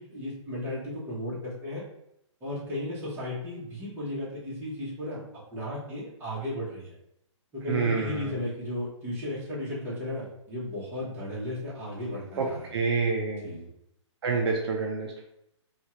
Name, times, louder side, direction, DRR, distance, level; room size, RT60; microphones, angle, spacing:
voice 1, 0.0-1.8 2.4-5.2 5.5-6.9 7.5-12.7 13.4-13.7, left 1 dB, 15° right, -8 dB, 1.1 m, -35 dB
voice 2, 7.7-8.4 12.4-12.5 12.7-13.5 14.2-15.2, right 4 dB, 55° right, 0 dB, 0.5 m, -27 dB
2.7 x 2.4 x 3.0 m, 0.78 s
hypercardioid pair, 145°, 16 cm